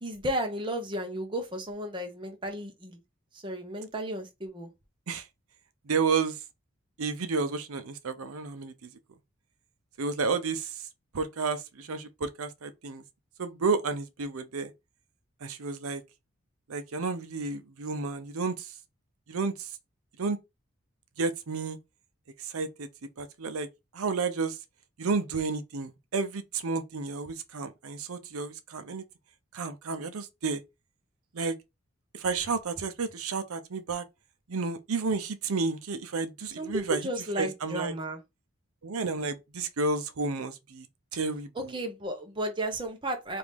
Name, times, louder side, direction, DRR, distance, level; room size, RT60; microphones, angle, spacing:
voice 1, 0.0-3.0 3.3-4.7 36.6-38.2 41.5-43.4, right 1 dB, 20° right, 0.8 m, -33 dB
voice 2, 5.9-6.4 7.0-8.9 10.0-10.9 11.1-13.0 13.4-14.7 15.4-16.0 16.7-18.7 19.3-19.7 20.2-20.4 21.2-21.8 22.4-22.9 23.2-23.7 23.9-24.6 25.0-29.0 29.5-30.6 31.3-31.6 32.1-34.0 34.5-37.1 37.4-37.9 38.8-40.9 41.1-41.5, right 4 dB, 80° right, 0.6 m, -31 dB
5.0 x 2.6 x 3.5 m
head